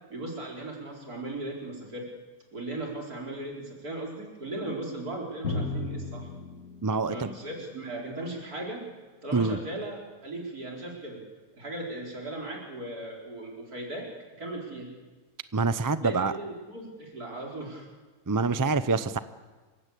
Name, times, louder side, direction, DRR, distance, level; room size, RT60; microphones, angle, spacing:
voice 1, 0.1-2.1 2.5-6.3 7.1-8.8 9.2-11.2 11.5-14.1 14.4-14.9 16.0-17.9, right 2 dB, 80° right, -2 dB, 4.9 m, -37 dB
Drum, 5.4-9.0, left 3 dB, 75° left, 2.3 m, -36 dB
voice 2, 6.8-7.3 9.3-9.6 15.5-16.3 18.3-19.2, right 4 dB, 20° right, 12 dB, 0.5 m, -26 dB
27.0 x 16.0 x 8.5 m, 1.3 s
omnidirectional pair, 1.6 m